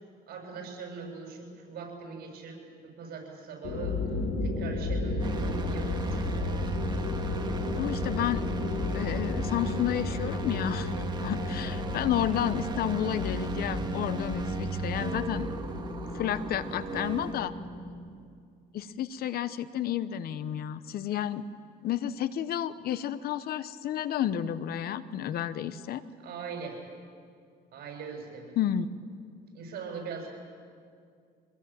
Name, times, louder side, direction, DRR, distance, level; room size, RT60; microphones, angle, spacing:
voice 1, 0.3-4.0 4.4-6.5 26.2-26.8 27.7-28.6 29.5-30.3, right 5 dB, 65° right, 2 dB, 7.7 m, -41 dB
sound 1, 3.6-17.9, left 2 dB, 80° left, 5.1 m, -33 dB
sound 2, 5.2-17.3, right 4 dB, 25° right, 2.2 m, -37 dB
voice 2, 7.8-8.4 8.9-10.9 11.2-15.5 16.1-17.5 18.7-21.4 21.8-26.0 28.6-28.9, left 10 dB, 65° left, 14 dB, 1.0 m, -31 dB
25.5 x 20.5 x 8.9 m, 2.2 s
cardioid pair, 110°, 17 cm